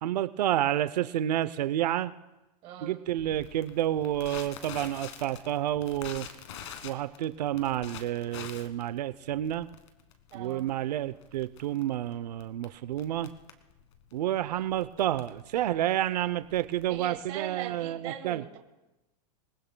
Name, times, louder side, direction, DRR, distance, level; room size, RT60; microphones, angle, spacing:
voice 1, 0.0-2.1 2.8-6.3 6.8-9.7 10.3-13.3 14.1-18.4, right 12 dB, 85° right, 14 dB, 0.6 m, -30 dB
voice 2, 2.6-3.0 10.3-10.7 14.3-14.7 16.9-18.6, right 10 dB, 25° right, 6 dB, 1.2 m, -40 dB
Crackle, 3.2-17.4, left 8 dB, 50° left, 1.5 m, -47 dB
27.5 x 19.5 x 2.2 m, 1.0 s
supercardioid pair, 175°, 20 cm